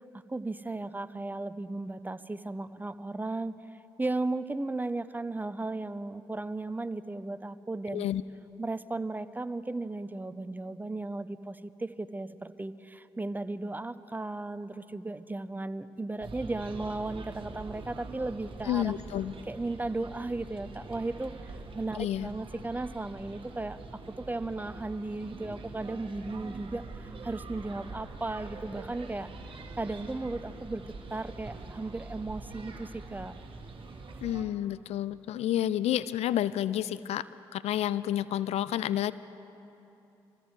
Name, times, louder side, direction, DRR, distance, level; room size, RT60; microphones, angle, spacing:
voice 1, 0.3-3.6 4.0-8.1 8.6-18.9 19.5-23.8 24.1-30.8 31.1-33.3, right 2 dB, 15° right, 13 dB, 0.6 m, -35 dB
voice 2, 7.9-8.2 18.7-19.3 22.0-22.3 34.2-39.1, left 12 dB, 65° left, 17 dB, 0.4 m, -30 dB
sound 1, 16.2-34.4, right 3 dB, 50° right, 1.6 m, -44 dB
25.0 x 15.0 x 3.2 m, 3.0 s
hypercardioid pair, 50°, 12 cm